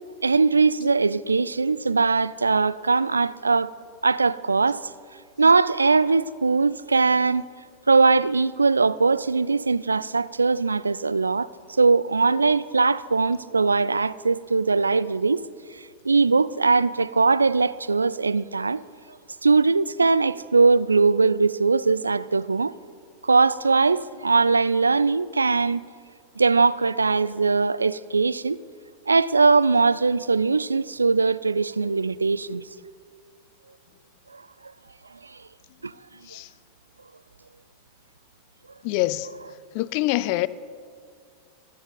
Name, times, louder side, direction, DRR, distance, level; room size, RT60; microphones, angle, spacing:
voice 1, 0.2-3.7 4.0-4.9 5.4-7.5 7.9-11.5 11.8-15.4 16.0-18.8 19.4-22.8 23.2-25.8 26.4-28.6 29.1-32.6 34.3-34.4 35.3-35.4 35.8-35.9, right 4 dB, 80° right, 0.3 m, -21 dB
voice 2, 38.8-39.3 39.7-40.5, left 18 dB, 45° left, 0.4 m, -25 dB
23.5 x 9.5 x 3.9 m
figure-of-eight pair, 90°, 0 cm